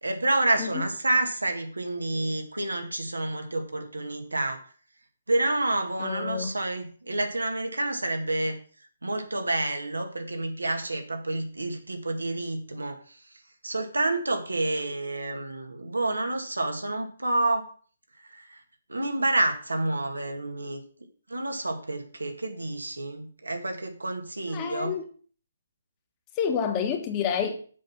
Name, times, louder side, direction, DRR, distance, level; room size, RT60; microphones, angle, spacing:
voice 1, 0.0-4.6 5.3-8.6 9.0-13.3 13.6-17.7 18.1-18.6 18.9-20.8 21.3-24.9, right 2 dB, 80° right, 1.9 m, -29 dB
voice 2, 6.0-6.5 24.5-25.0 26.3-27.6, left 7 dB, 25° left, 1.5 m, -28 dB
7.5 x 5.6 x 5.9 m
figure-of-eight pair, 140°, 0 cm